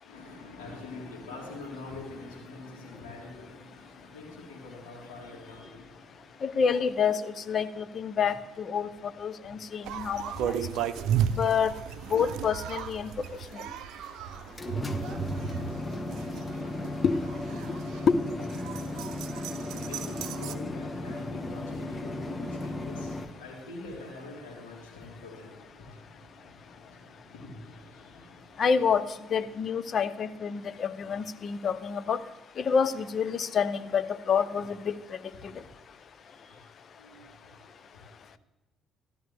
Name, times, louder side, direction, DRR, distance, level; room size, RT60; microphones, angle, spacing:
voice 1, 0.0-6.4 9.3-10.1 19.6-28.6 36.2-36.6 37.0-37.6, left 2 dB, 75° left, -4 dB, 4.1 m, -45 dB
voice 2, 6.4-10.6 11.3-11.7 12.1-13.1 13.5-13.6 17.0-17.2 18.1-18.2 28.6-29.0 29.3-32.2 32.6-35.0 35.4-35.5, left 6 dB, 50° left, 14 dB, 0.8 m, -27 dB
sound 1, 9.8-20.6, right 8 dB, 65° right, 0.6 m, -34 dB
sound 2, 14.3-23.3, left 2 dB, 25° left, 1.2 m, -36 dB
13.5 x 12.5 x 3.5 m, 1.1 s
figure-of-eight pair, 45°, 0 cm